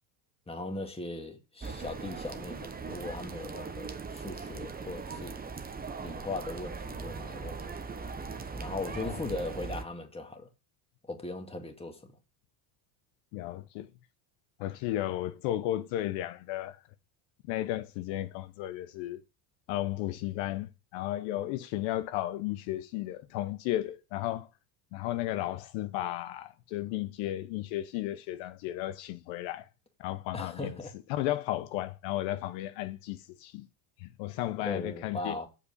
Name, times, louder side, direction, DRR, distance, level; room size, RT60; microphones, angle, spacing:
voice 1, 0.5-5.4 6.0-7.7 8.6-10.5 11.1-12.1 30.3-30.9 34.6-35.5, left 2 dB, 10° left, 2.0 m, -39 dB
sound 1, 1.6-9.8, right 4 dB, 20° right, 1.0 m, -40 dB
voice 2, 8.9-9.3 13.3-13.9 14.6-16.8 17.5-19.2 19.7-24.5 24.9-29.7 30.0-30.7 31.1-33.7 34.0-35.4, left 14 dB, 65° left, 0.8 m, -34 dB
7.1 x 5.1 x 6.5 m
supercardioid pair, 95°, 49 cm